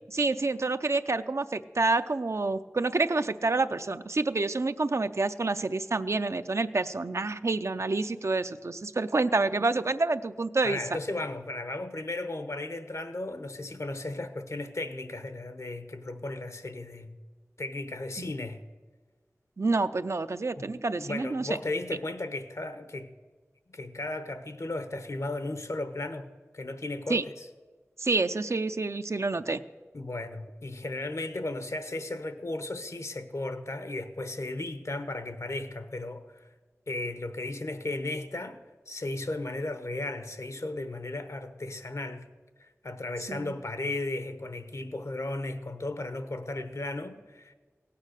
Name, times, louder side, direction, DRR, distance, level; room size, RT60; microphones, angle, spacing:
voice 1, 0.1-10.8 19.6-21.6 27.1-27.3 28.0-29.6 43.3-43.5, right 3 dB, 65° right, 0.5 m, -28 dB
voice 2, 10.6-17.1 17.6-18.6 20.6-20.7 21.0-23.1 23.7-26.3 26.5-27.4 29.9-36.5 36.9-38.6 38.9-42.3 42.8-47.5, left 2 dB, 75° left, 0.9 m, -35 dB
17.0 x 8.6 x 6.5 m
wide cardioid pair, 50°, 5 cm